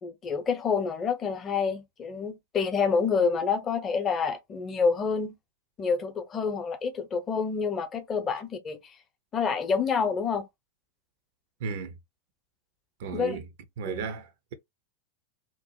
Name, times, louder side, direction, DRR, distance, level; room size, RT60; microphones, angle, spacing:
voice 1, 0.0-5.4 5.8-8.8 9.3-10.5 13.1-13.4 13.8-14.1, left 5 dB, 25° left, 0.6 m, -28 dB
voice 2, 11.6-12.0 13.0-13.5 13.8-14.5, right 5 dB, 55° right, 0.5 m, -34 dB
2.8 x 2.0 x 2.8 m
figure-of-eight pair, 90°, 0 cm